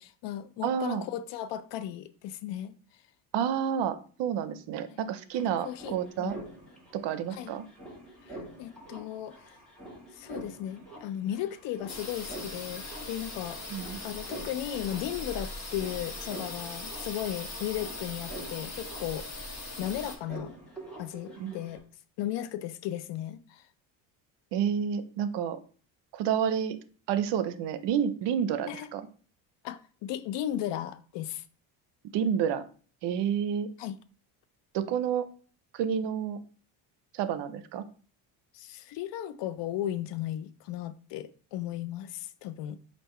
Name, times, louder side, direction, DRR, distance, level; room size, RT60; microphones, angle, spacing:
voice 1, 0.0-2.7 4.9-5.0 5.6-6.4 7.3-7.5 8.2-9.4 10.1-13.6 14.0-19.4 19.8-20.6 21.0-21.8 22.2-23.6 28.7-28.9 29.6-31.4 33.8-34.0 38.5-42.8, left 12 dB, 65° left, 0.5 m, -36 dB
voice 2, 0.6-1.1 3.3-6.4 6.9-7.7 13.7-14.0 21.4-21.5 24.5-25.6 26.1-26.8 27.1-29.0 32.1-32.6 33.0-33.7 34.7-35.3 35.7-36.4 37.1-37.8, right 8 dB, 65° right, 0.6 m, -29 dB
sound 1, 5.0-21.8, right 1 dB, ahead, 1.6 m, -47 dB
sound 2, 11.9-20.2, left 2 dB, 35° left, 1.4 m, -40 dB
3.4 x 2.6 x 4.3 m
supercardioid pair, 80°, 46 cm